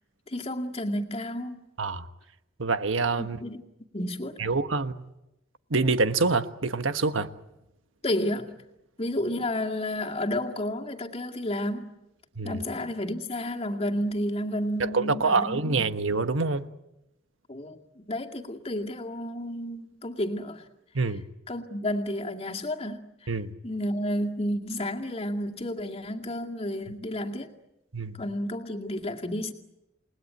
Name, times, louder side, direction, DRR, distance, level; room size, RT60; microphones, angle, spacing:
voice 1, 0.3-1.6 3.2-3.6 3.9-4.4 8.0-8.6 9.0-12.0 12.4-16.0 17.5-20.6 21.5-23.3 23.6-27.5 28.2-29.5, left 1 dB, 30° left, 2.2 m, -31 dB
voice 2, 2.6-3.4 4.4-5.1 5.7-7.3 12.4-12.6 14.8-16.7 20.9-21.2 23.3-23.5 27.9-28.2, right 3 dB, 85° right, 1.3 m, -26 dB
29.5 x 20.0 x 9.4 m
head